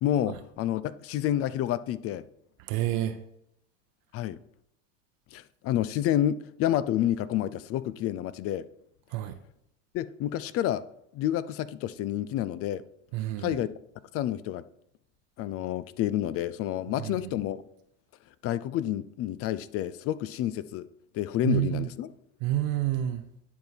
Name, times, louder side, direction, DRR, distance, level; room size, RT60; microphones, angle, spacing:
voice 1, 0.0-2.2 4.1-4.4 5.3-8.6 9.9-10.8 11.1-12.8 13.4-13.7 14.1-14.6 15.4-17.6 18.4-20.8 21.1-22.1, left 12 dB, 40° left, 16 dB, 0.4 m, -29 dB
voice 2, 2.7-3.2 9.1-9.3 13.1-13.5 21.4-21.9 22.4-23.2, right 13 dB, 60° right, 7 dB, 0.7 m, -28 dB
10.5 x 3.5 x 4.5 m, 0.75 s
hypercardioid pair, 90°, 35 cm